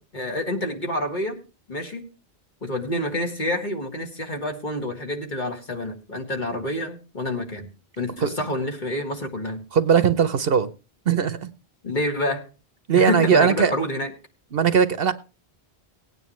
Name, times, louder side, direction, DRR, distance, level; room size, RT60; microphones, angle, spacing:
voice 1, 0.0-1.4 1.7-2.1 2.6-7.7 8.0-9.6 11.8-12.5 12.9-14.1, left 1 dB, 45° left, 2.1 m, -28 dB
voice 2, 9.7-10.7 11.1-11.5 12.9-13.7 14.5-15.1, right 7 dB, 65° right, 1.0 m, -19 dB
18.5 x 9.3 x 3.1 m
omnidirectional pair, 1.1 m